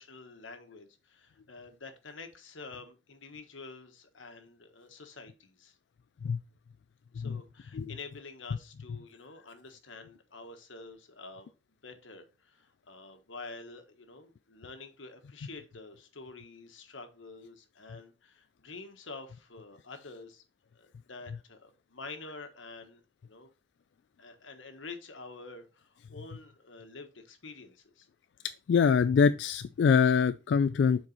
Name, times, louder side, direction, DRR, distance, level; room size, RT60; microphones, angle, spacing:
voice 1, 0.0-5.7 7.1-11.5 11.8-20.4 20.7-23.5 24.2-28.1, left 3 dB, 85° left, 1.4 m, -48 dB
voice 2, 28.7-31.1, left 6 dB, 65° left, 0.3 m, -24 dB
7.3 x 4.6 x 3.9 m
head